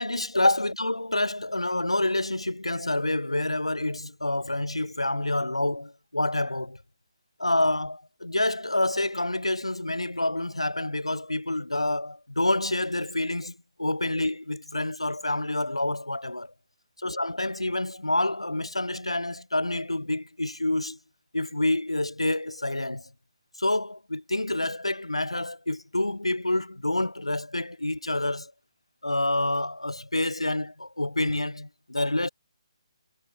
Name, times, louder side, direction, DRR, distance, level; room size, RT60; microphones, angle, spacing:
voice 1, 0.0-6.8 7.4-16.5 17.0-21.0 21.3-23.1 23.6-28.5 29.0-32.3, left 1 dB, 85° left, 0.4 m, -28 dB
figure-of-eight pair, 140°, 3 cm